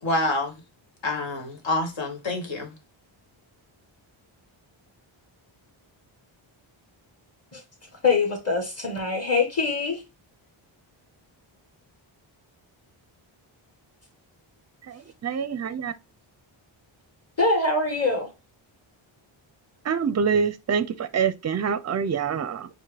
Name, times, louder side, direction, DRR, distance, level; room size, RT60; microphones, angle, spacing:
voice 1, 0.0-0.5 1.0-2.7, left 2 dB, 65° left, 1.7 m, -27 dB
voice 2, 8.0-10.0 17.4-18.3, left 3 dB, 30° left, 1.9 m, -23 dB
voice 3, 14.9-15.9 19.9-22.7, right 6 dB, 35° right, 0.5 m, -26 dB
4.5 x 2.2 x 4.7 m
wide cardioid pair, 110°, 50 cm